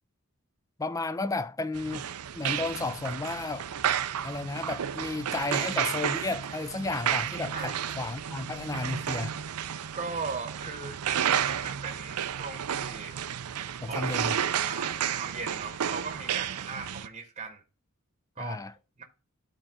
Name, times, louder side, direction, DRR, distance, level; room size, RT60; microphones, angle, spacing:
voice 1, 0.8-2.0 2.4-3.7 4.2-9.3 13.8-14.4 18.4-18.7, left 3 dB, 15° left, 0.4 m, -33 dB
sound 1, 1.7-17.1, right 9 dB, 90° right, 0.5 m, -32 dB
voice 2, 9.9-13.2 13.9-14.0 14.7-17.6 18.4-18.6 19.0-19.1, right 4 dB, 30° right, 1.0 m, -38 dB
12.0 x 4.3 x 3.6 m
head